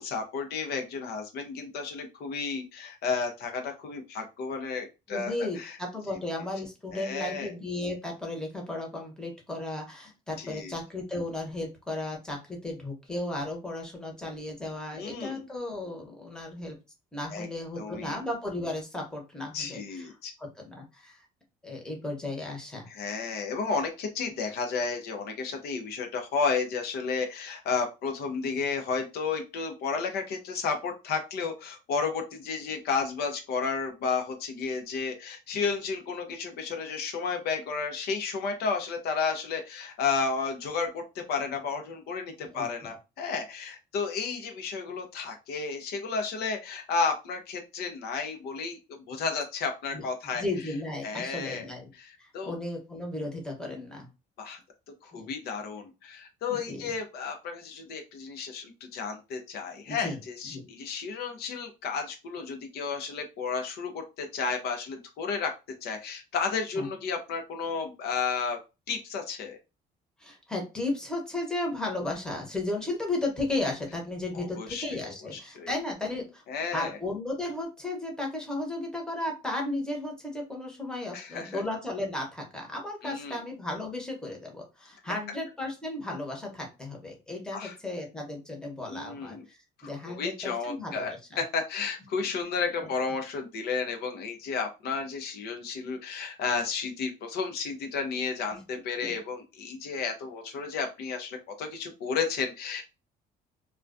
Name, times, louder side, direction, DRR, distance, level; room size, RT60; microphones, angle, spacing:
voice 1, 0.0-5.8 6.9-7.5 10.4-10.8 14.9-15.5 17.3-17.5 17.8-18.2 19.5-20.3 22.9-50.5 51.0-52.5 53.6-53.8 54.4-54.6 55.0-65.5 65.8-68.6 68.9-69.6 74.3-75.7 76.5-77.0 81.1-81.6 83.0-83.4 87.5-87.7 88.9-89.4 89.8-102.8, left 5 dB, 70° left, 5 dB, 0.6 m, -32 dB
voice 2, 5.1-16.8 17.1-20.1 20.4-21.2 21.6-22.9 42.5-42.7 49.9-50.0 50.3-51.9 52.2-54.1 55.1-55.3 56.5-56.9 59.9-60.2 60.5-60.6 66.7-66.9 70.2-76.4 76.7-91.2 92.8-92.9 99.0-99.2, left 2 dB, 5° left, 0 dB, 0.8 m, -35 dB
2.2 x 2.2 x 2.5 m, 0.28 s
cardioid pair, 110°, 17 cm